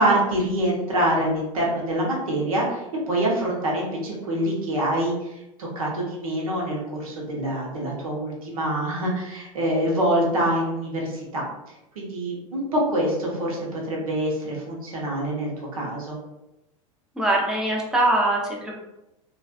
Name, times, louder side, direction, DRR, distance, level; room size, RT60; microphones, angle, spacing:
voice 1, 0.0-11.4 12.0-16.2, right 1 dB, 85° right, -3 dB, 0.8 m, -25 dB
voice 2, 17.2-18.7, right 2 dB, 5° right, -3 dB, 0.6 m, -22 dB
2.4 x 2.2 x 2.4 m, 0.95 s
hypercardioid pair, 95°, 17 cm